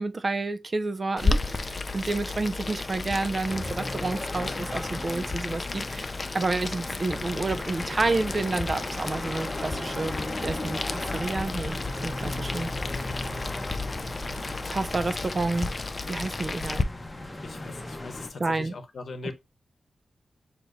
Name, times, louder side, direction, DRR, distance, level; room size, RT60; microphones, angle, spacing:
voice 1, 0.0-6.1 6.3-12.7 14.7-15.7 16.1-16.9 18.4-18.7 19.2-19.3, right 3 dB, 40° right, 0.4 m, -30 dB
Boiling, 1.2-16.8, left 3 dB, 35° left, 0.4 m, -33 dB
sound 1, 3.5-18.3, left 1 dB, 20° left, 0.8 m, -37 dB
voice 2, 17.4-19.3, left 3 dB, 70° left, 0.8 m, -40 dB
6.4 x 2.8 x 2.5 m
wide cardioid pair, 110°, 0 cm